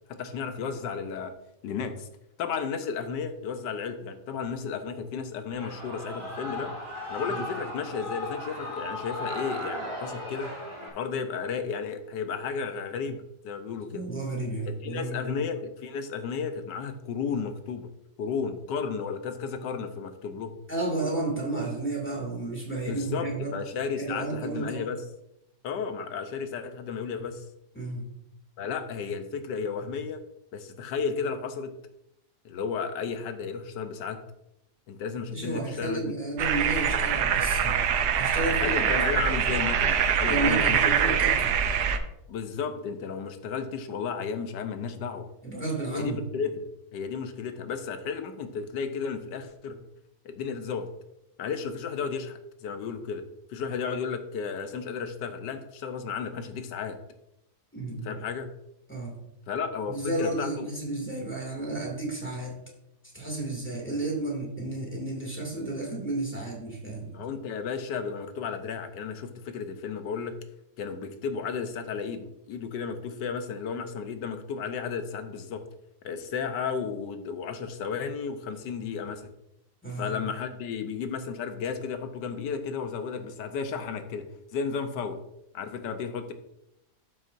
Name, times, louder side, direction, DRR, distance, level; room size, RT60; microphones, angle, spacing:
voice 1, 0.1-1.3 1.6-2.1 2.4-6.7 7.1-10.5 10.8-14.1 14.8-17.9 18.2-20.5 22.9-25.0 25.6-27.4 28.6-30.2 30.5-31.7 32.4-34.2 34.9-36.1 38.4-40.8 42.3-45.3 45.9-46.6 46.9-49.8 50.2-50.9 51.4-53.2 53.5-57.0 58.0-58.5 59.5-60.7 67.1-70.4 70.8-75.6 76.0-79.3 80.0-84.3 84.5-85.2 85.5-86.3, left 6 dB, 85° left, 8 dB, 1.4 m, -33 dB
Shout / Cheering, 5.5-10.9, left 1 dB, 15° right, 1.7 m, -36 dB
voice 2, 13.9-15.5 20.7-23.5 24.0-24.9 27.7-28.1 35.3-37.8 38.2-39.1 40.3-41.6 45.4-46.2 57.7-58.1 58.9-59.1 59.9-62.5 63.1-67.2 79.8-80.3, right 2 dB, 5° left, -2 dB, 2.2 m, -32 dB
sound 1, 36.4-42.0, right 8 dB, 80° right, 1.3 m, -24 dB
12.0 x 6.2 x 2.6 m, 0.84 s
omnidirectional pair, 1.8 m